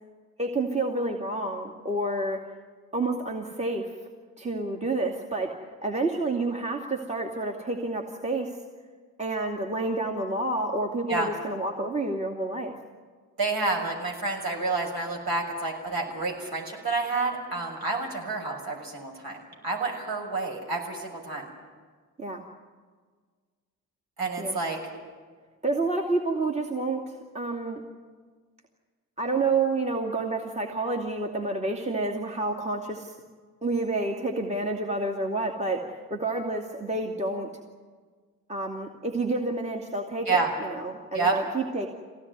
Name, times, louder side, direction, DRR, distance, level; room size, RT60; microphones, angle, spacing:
voice 1, 0.4-2.4 2.9-3.9 4.4-5.5 5.8-8.6 9.2-12.7 22.2-22.4 24.4-24.6 25.6-27.8 29.2-33.2 33.6-37.5 38.5-41.9, right 2 dB, 15° right, 1 dB, 2.5 m, -29 dB
voice 2, 13.4-21.5 24.2-24.8 40.3-40.5 41.1-41.4, right 3 dB, 45° right, 2 dB, 6.7 m, -29 dB
24.5 x 17.0 x 9.6 m, 1.5 s
figure-of-eight pair, 45°, 48 cm